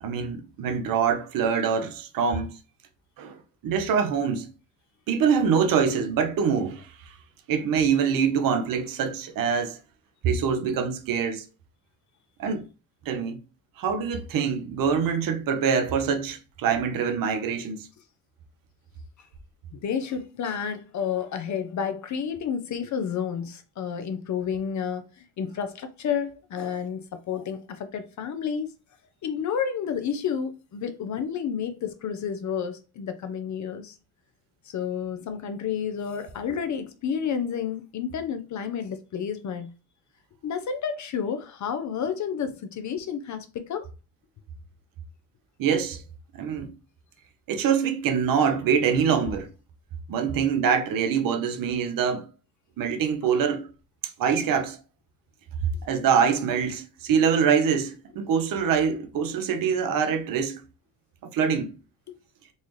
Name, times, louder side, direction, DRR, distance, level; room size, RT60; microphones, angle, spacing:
voice 1, 0.0-2.5 3.2-4.5 5.1-6.9 7.5-9.8 10.2-11.4 12.4-12.7 13.1-13.4 13.8-17.9 45.6-46.0 46.3-46.7 47.5-49.5 50.1-52.3 52.8-53.7 54.2-54.8 55.8-60.6 61.3-61.7, right 6 dB, 55° right, 0.8 m, -24 dB
voice 2, 19.7-28.7 29.2-33.9 34.6-39.7 40.4-43.9 62.1-62.2, left 7 dB, 45° left, 0.7 m, -30 dB
4.1 x 2.4 x 3.1 m
supercardioid pair, 70°, 40 cm